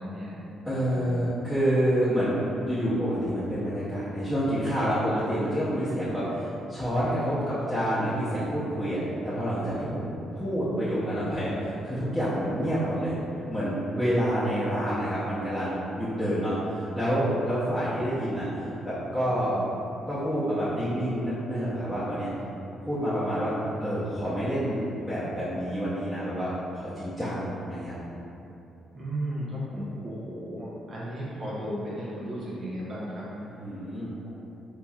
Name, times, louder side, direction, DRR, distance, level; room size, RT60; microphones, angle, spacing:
voice 1, 0.0-1.1 5.8-6.3 12.3-12.9 19.2-19.8 25.1-25.3 28.9-33.8, equal, 45° right, -9 dB, 0.8 m, -36 dB
voice 2, 0.6-2.3 2.7-13.1 13.5-19.5 20.1-22.3 22.8-23.5 23.8-27.9 33.6-34.1, equal, 5° left, -13 dB, 0.8 m, -28 dB
4.1 x 3.0 x 2.4 m, 2.9 s
cardioid pair, 90°, 0 cm